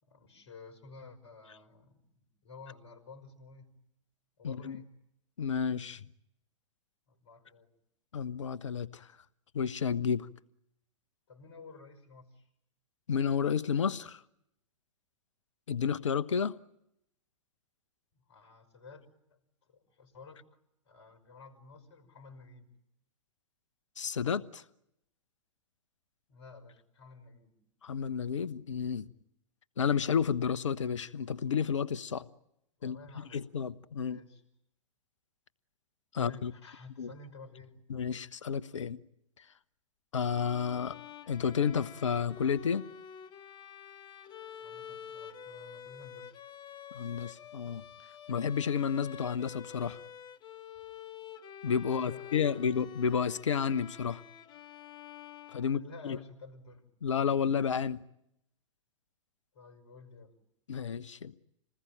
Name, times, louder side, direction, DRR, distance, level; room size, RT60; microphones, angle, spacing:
voice 1, 0.0-3.7 4.4-4.9 7.1-7.7 11.3-12.5 18.1-19.0 19.3-20.6 20.9-22.7 26.3-27.6 32.8-33.4 34.0-34.4 36.1-37.8 44.6-46.3 51.8-52.7 55.6-56.9 59.5-60.3, left 4 dB, 55° left, 5.5 m, -52 dB
voice 2, 4.4-4.8 5.4-6.0 8.1-9.1 9.5-10.3 13.1-14.2 15.7-16.6 24.0-24.6 27.8-29.1 29.8-32.2 32.8-33.0 33.3-34.2 36.1-36.5 37.0-37.1 37.9-39.0 40.1-41.0 41.3-42.8 46.9-47.8 48.3-50.0 51.6-54.2 55.5-55.8 56.0-56.2 57.0-58.0 60.7-61.4, left 7 dB, 70° left, 1.1 m, -31 dB
Bowed string instrument, 40.2-56.1, left 8 dB, 25° left, 1.3 m, -48 dB
27.5 x 20.0 x 9.0 m
figure-of-eight pair, 105°, 16 cm